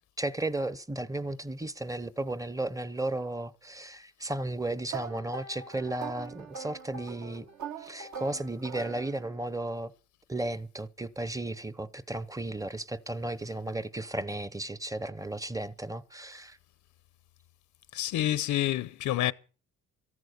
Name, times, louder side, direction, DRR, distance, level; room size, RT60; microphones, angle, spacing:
voice 1, 0.2-7.5 7.8-9.9 10.3-16.6, right 2 dB, 10° right, 0.8 m, -34 dB
sound 1, 4.9-9.5, right 7 dB, 65° right, 1.7 m, -42 dB
voice 2, 17.9-19.3, left 13 dB, 75° left, 0.8 m, -28 dB
14.0 x 11.0 x 6.7 m
cardioid pair, 90°, 30 cm